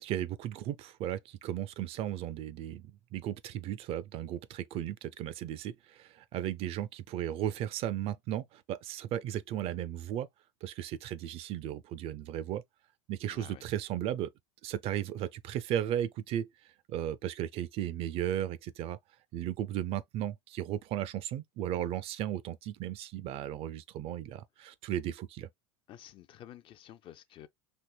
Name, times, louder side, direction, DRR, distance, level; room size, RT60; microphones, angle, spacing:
voice 1, 0.0-10.3 10.6-12.6 13.1-14.3 14.6-16.5 16.9-19.0 19.3-25.5, right 11 dB, 40° right, 0.4 m, -35 dB
voice 2, 13.3-13.6 25.9-27.5, left 11 dB, 35° left, 0.4 m, -51 dB
4.5 x 3.0 x 2.2 m
hypercardioid pair, 85°, 15 cm